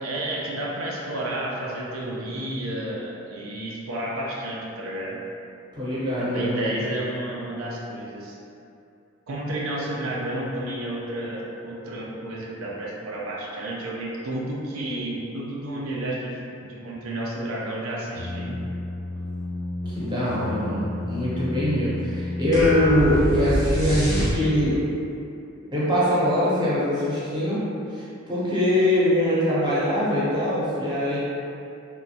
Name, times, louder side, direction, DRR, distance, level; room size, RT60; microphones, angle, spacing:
voice 1, 0.0-5.2 6.2-8.4 9.3-18.6, right 1 dB, 90° right, -4 dB, 0.5 m, -31 dB
voice 2, 5.7-6.8 19.9-24.8 25.7-27.6 27.9-31.2, left 1 dB, 20° right, -9 dB, 0.6 m, -23 dB
sound 1, 18.1-23.5, left 2 dB, 55° left, 0.3 m, -32 dB
sound 2, 22.5-24.8, equal, 15° left, 0.7 m, -23 dB
3.0 x 2.2 x 2.7 m, 2.6 s
head